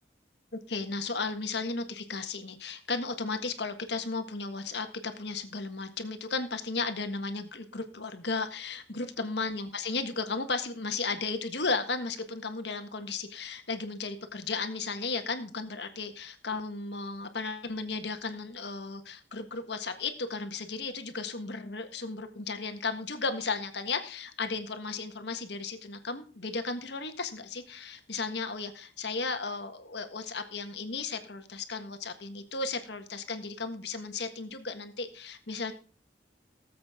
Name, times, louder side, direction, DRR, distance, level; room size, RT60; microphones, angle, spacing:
voice 1, 0.7-35.7, left 4 dB, 65° left, 8 dB, 1.6 m, -35 dB
18.5 x 7.7 x 3.7 m, 0.38 s
head